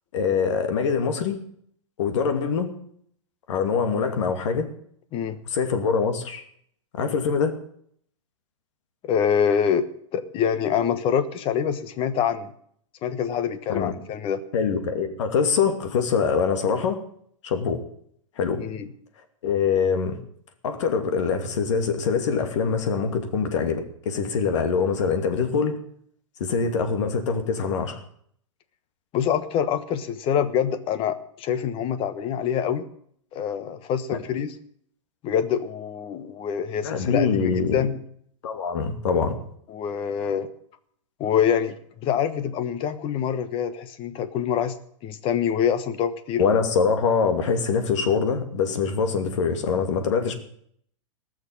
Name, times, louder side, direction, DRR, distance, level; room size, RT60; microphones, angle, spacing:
voice 1, 0.1-1.4 2.0-2.7 3.5-4.6 5.5-6.4 6.9-7.5 13.7-13.9 14.5-17.0 17.4-17.8 18.4-18.6 19.4-20.2 20.6-25.8 26.4-28.0 36.8-37.9 38.4-39.3 46.4-50.3, left 5 dB, 65° left, 7 dB, 2.5 m, -24 dB
voice 2, 9.0-12.5 13.0-14.4 18.6-18.9 29.1-32.8 33.3-34.5 35.2-38.0 39.7-40.5 41.2-44.7 45.0-46.4, left 8 dB, 35° left, 12 dB, 1.3 m, -25 dB
19.0 x 6.5 x 8.8 m, 0.65 s
hypercardioid pair, 130°, 16 cm